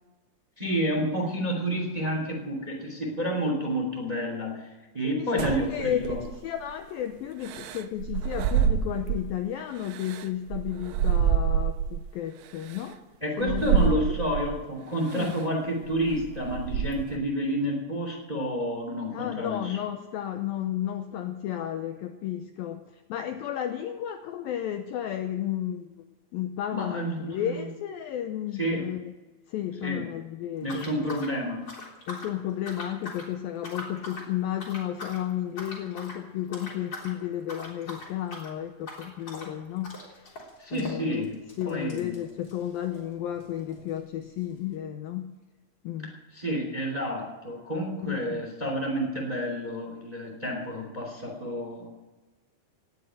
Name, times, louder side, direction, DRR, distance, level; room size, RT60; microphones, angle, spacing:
voice 1, 0.6-4.7 4.9-6.2 13.2-19.8 26.7-27.6 28.6-28.8 29.8-30.1 30.6-31.7 40.6-41.4 41.7-42.1 46.3-51.9, equal, 10° right, 1 dB, 2.1 m, -30 dB
voice 2, 5.0-13.0 13.4-14.0 15.1-15.3 19.1-29.1 29.5-31.1 32.1-40.3 40.7-41.3 41.6-45.3 45.8-46.1 48.0-48.5, left 11 dB, 80° left, 7 dB, 2.1 m, -33 dB
sound 1, 5.4-6.6 7.4-9.4 9.8-12.0 12.7-12.8 13.4-14.6 15.1-15.4 15.9-17.2, right 8 dB, 80° right, 2.0 m, -27 dB
sound 2, 30.6-32.4 32.6-33.3 33.6-34.3 34.6-35.2 35.6-36.2 36.5-37.1 37.4-43.1 43.4-43.5 43.7-43.8 44.5-44.6, left 2 dB, 25° left, 3.7 m, -42 dB
18.0 x 7.9 x 9.1 m, 1.2 s
omnidirectional pair, 5.0 m